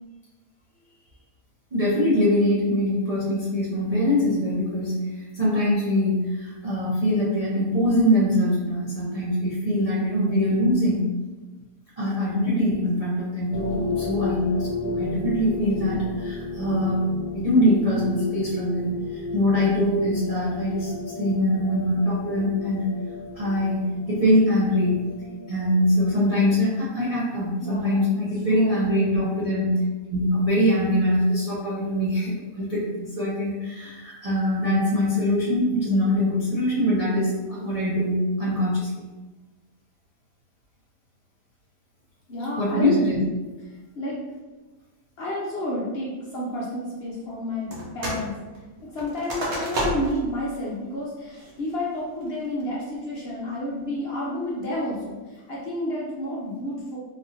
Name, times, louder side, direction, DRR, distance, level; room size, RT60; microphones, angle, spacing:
voice 1, 1.7-5.1 5.3-11.1 12.0-17.1 17.3-18.9 19.3-22.9 23.4-25.0 25.5-29.8 30.1-39.1 42.6-43.2, left 1 dB, 60° right, -8 dB, 0.3 m, -23 dB
sound 1, 13.5-26.7, left 3 dB, 80° left, 1.0 m, -34 dB
voice 2, 27.6-28.2 28.5-28.9 42.3-42.9 43.7-44.2 45.2-48.3 48.8-57.0, left 1 dB, 60° left, -5 dB, 0.7 m, -31 dB
sound 2, 47.7-48.3 48.5-50.3 50.7-50.8 51.3-51.7 52.2-52.6, right 1 dB, 75° right, 1.2 m, -30 dB
3.5 x 2.5 x 2.7 m, 1.2 s
omnidirectional pair, 1.6 m